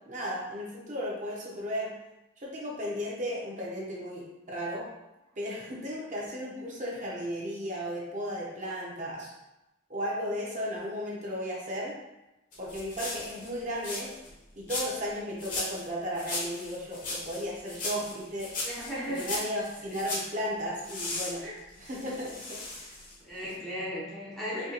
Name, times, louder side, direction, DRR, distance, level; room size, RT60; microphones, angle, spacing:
voice 1, 0.1-1.9 2.4-4.8 5.4-9.3 9.9-12.0 12.6-14.1 14.6-18.5 19.1-21.4 21.8-23.0 23.3-23.5, equal, 35° right, -4 dB, 0.8 m, -35 dB
sound 1, 12.5-14.3 14.7-15.1 15.4-15.9 16.2-20.3 20.8-23.2 23.5-23.6, left 2 dB, 40° left, 0.8 m, -37 dB
voice 2, 18.6-19.3 21.4-21.6 23.2-24.7, equal, ahead, -8 dB, 0.6 m, -36 dB
4.5 x 2.9 x 2.9 m, 0.96 s
head